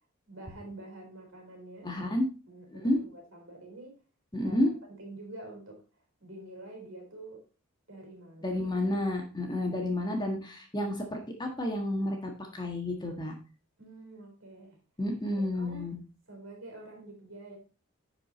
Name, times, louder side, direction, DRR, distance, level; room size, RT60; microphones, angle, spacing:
voice 1, 0.3-2.1 2.5-4.0 4.4-5.8 6.2-7.4 7.9-8.7 13.8-14.8 15.4-15.9 16.3-17.6, right 2 dB, 60° right, 2 dB, 4.2 m, -47 dB
voice 2, 1.8-2.2 2.7-3.0 4.3-4.7 8.4-13.3 15.0-16.0, left 1 dB, 20° left, 2 dB, 1.4 m, -30 dB
10.5 x 4.9 x 4.1 m, 0.34 s
head